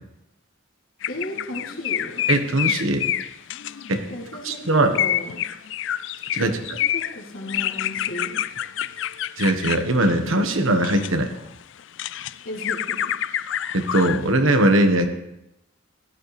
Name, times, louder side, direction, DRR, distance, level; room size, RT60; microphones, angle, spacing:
sound 1, 1.0-4.2 4.9-11.1 11.6-14.3, left 11 dB, 65° left, 0.4 m, -28 dB
voice 1, 1.1-2.2 4.1-5.4 6.4-8.4 12.4-13.1, left 1 dB, 90° left, -2 dB, 3.3 m, -35 dB
voice 2, 2.3-3.1 3.9-4.0 4.4-4.9 6.3-6.6 9.4-11.3 13.7-15.0, right 1 dB, 85° right, 6 dB, 1.4 m, -20 dB
16.5 x 12.0 x 3.3 m, 0.87 s
head